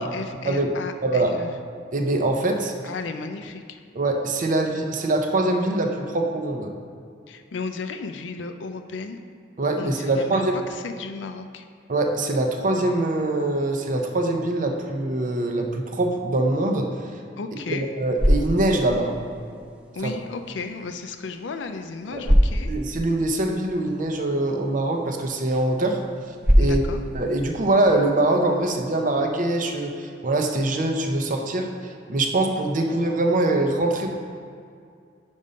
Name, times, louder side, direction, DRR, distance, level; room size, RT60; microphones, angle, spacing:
voice 1, 0.0-1.5 2.8-3.8 7.3-9.2 9.8-11.6 17.4-17.9 19.9-22.7 26.6-27.0, left 4 dB, 80° left, 8 dB, 0.4 m, -34 dB
voice 2, 1.0-1.4 1.9-2.7 3.9-6.7 9.6-10.6 11.9-16.9 17.7-19.1 20.0-20.1 22.1-22.2 22.7-26.0 26.6-26.8 27.1-31.7 32.1-34.1, right 2 dB, 45° right, 3 dB, 0.6 m, -23 dB
sound 1, 17.8-28.9, equal, 5° right, 0.4 m, -27 dB
5.4 x 5.3 x 5.1 m, 2.3 s
head